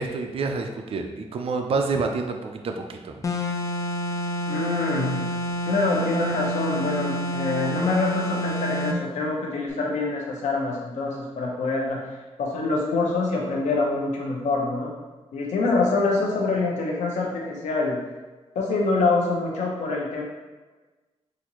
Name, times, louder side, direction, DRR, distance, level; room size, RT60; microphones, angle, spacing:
voice 1, 0.0-3.1, right 4 dB, 55° right, 4 dB, 0.4 m, -28 dB
sound 1, 3.2-9.0, equal, 25° left, 0.4 m, -28 dB
voice 2, 4.5-5.2 5.7-14.9 15.3-18.0 18.5-20.2, left 3 dB, 85° left, -1 dB, 0.8 m, -25 dB
4.1 x 2.5 x 3.0 m, 1.3 s
cardioid pair, 100°, 12 cm